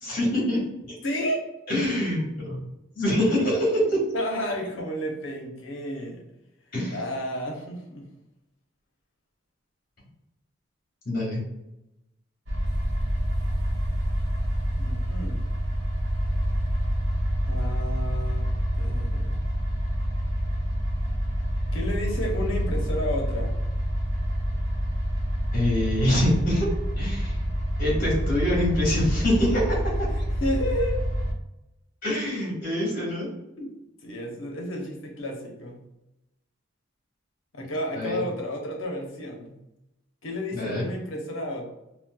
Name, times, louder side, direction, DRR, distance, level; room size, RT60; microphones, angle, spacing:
voice 1, 0.0-0.9 1.7-2.6 2.9-4.0 6.7-7.0 11.0-11.4 25.5-26.7 27.0-27.4 27.8-30.1 32.0-33.3 37.9-38.2 40.5-40.9, left 1 dB, 45° left, -3 dB, 1.3 m, -25 dB
voice 2, 1.0-1.4 4.1-6.2 6.9-8.1 14.8-15.4 17.5-18.5 18.8-19.4 21.7-23.5 30.1-31.0 33.6-33.7 34.0-35.8 37.5-39.6 40.2-41.6, equal, 75° left, 1 dB, 0.8 m, -31 dB
sound 1, 12.5-31.3, equal, 70° right, 0.8 m, -27 dB
4.1 x 2.2 x 2.2 m, 0.89 s
head